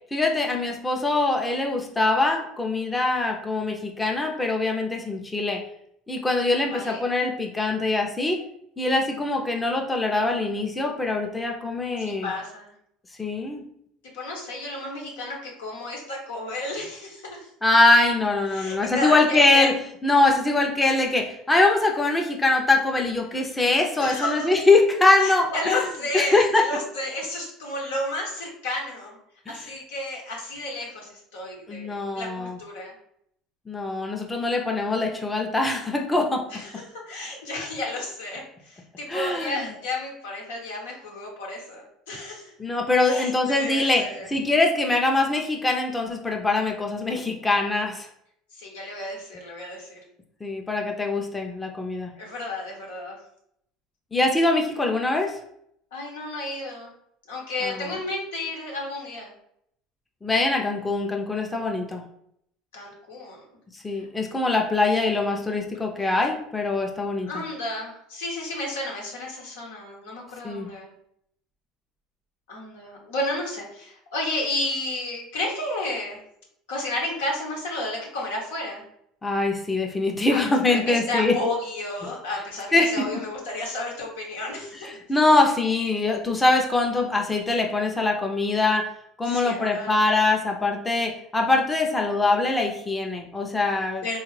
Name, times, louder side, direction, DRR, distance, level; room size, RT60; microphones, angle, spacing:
voice 1, 0.1-5.6 6.1-8.4 8.8-12.3 13.2-13.6 17.6-19.7 20.0-25.8 26.1-26.6 29.5-29.6 31.7-32.6 33.7-36.4 39.1-39.7 42.6-48.1 50.4-52.1 54.1-55.3 57.6-57.9 60.2-62.0 63.7-67.4 70.4-70.7 79.2-81.3 82.7-82.9 84.8-88.9 89.2-94.2, left 2 dB, 15° left, 1 dB, 0.5 m, -23 dB
voice 2, 6.7-7.0 12.0-12.7 14.1-17.5 18.5-19.7 24.0-24.5 25.2-29.2 29.5-32.9 36.5-42.5 43.0-44.3 48.5-50.0 52.1-53.2 55.9-56.9 57.3-59.3 62.7-63.4 64.9-65.0 67.3-70.9 72.5-76.2 76.7-78.8 80.3-80.4 80.6-84.9 89.2-90.0 94.0-94.2, left 2 dB, 90° left, -2 dB, 1.0 m, -32 dB
3.5 x 2.3 x 3.2 m, 0.72 s
supercardioid pair, 85°, 0 cm